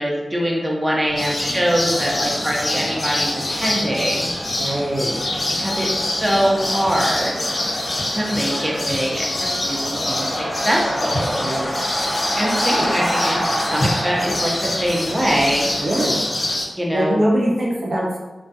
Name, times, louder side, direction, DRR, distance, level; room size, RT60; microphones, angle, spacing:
voice 1, 0.0-4.3 5.6-7.3 8.1-11.4 12.4-15.7 16.7-17.2, equal, 20° right, -3 dB, 0.6 m, -23 dB
sound 1, 1.1-16.6, equal, 65° left, 1.1 m, -28 dB
sound 2, 1.2-16.7, left 1 dB, 50° left, 0.4 m, -26 dB
voice 2, 4.6-5.2 11.3-11.7 12.8-12.9 15.8-16.2 16.9-18.2, right 1 dB, 65° right, -4 dB, 0.5 m, -22 dB
2.3 x 2.2 x 2.7 m, 1.2 s
cardioid pair, 55°, 0 cm